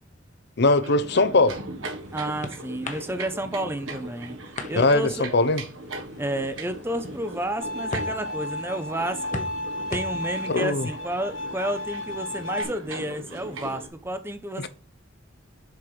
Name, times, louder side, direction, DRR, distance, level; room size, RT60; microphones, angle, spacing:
voice 1, 0.6-1.6 4.7-5.6 10.5-10.9 14.6-14.7, left 2 dB, 55° left, 0.7 m, -20 dB
sound 1, 0.8-13.9, right 2 dB, 75° right, 1.4 m, -39 dB
sound 2, 1.7-12.5, left 2 dB, 40° left, 1.1 m, -42 dB
voice 2, 2.1-4.4 4.7-5.3 6.2-9.5 9.9-14.7, right 1 dB, 10° right, 0.6 m, -31 dB
Bowed string instrument, 7.6-12.6, left 1 dB, 70° left, 1.8 m, -33 dB
6.9 x 4.7 x 5.0 m
head